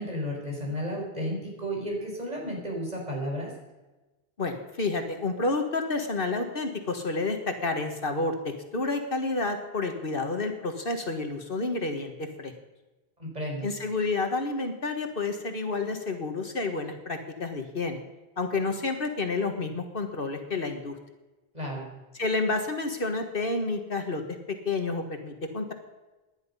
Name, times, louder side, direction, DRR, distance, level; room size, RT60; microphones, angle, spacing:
voice 1, 0.0-3.5 13.2-13.7 21.5-21.8, equal, 40° right, -1 dB, 5.0 m, -33 dB
voice 2, 4.4-12.5 13.6-18.0 18.4-21.0 22.1-24.4 24.6-25.7, left 3 dB, 60° left, 5 dB, 1.7 m, -30 dB
18.5 x 10.5 x 5.5 m, 1.1 s
omnidirectional pair, 1.0 m